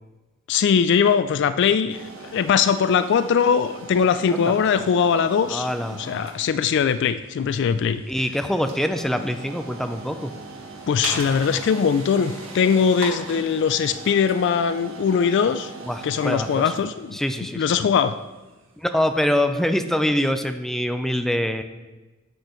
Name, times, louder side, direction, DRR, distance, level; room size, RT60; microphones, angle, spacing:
voice 1, 0.5-8.0 10.9-15.7 16.0-17.2 17.6-18.1, left 6 dB, 60° left, 13 dB, 0.3 m, -21 dB
sound 1, 1.9-18.8, right 3 dB, 85° right, 1.7 m, -39 dB
voice 2, 5.5-6.0 8.1-10.3 15.8-16.6 17.1-17.7 18.8-21.6, left 1 dB, ahead, 7 dB, 0.4 m, -24 dB
11.5 x 7.5 x 3.1 m, 1.2 s
head